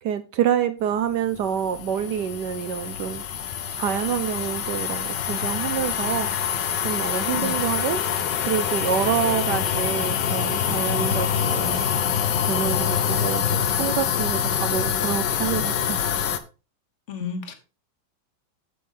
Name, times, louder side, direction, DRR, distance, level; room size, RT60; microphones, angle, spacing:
voice 1, 0.0-3.2 3.7-6.3 6.8-8.0 8.5-11.8 12.5-16.1, right 9 dB, 70° right, 1.2 m, -27 dB
sound 1, 1.2-16.4, left 8 dB, 70° left, 1.5 m, -25 dB
voice 2, 17.1-17.5, left 6 dB, 40° left, 1.6 m, -31 dB
8.4 x 8.0 x 3.8 m
omnidirectional pair, 2.1 m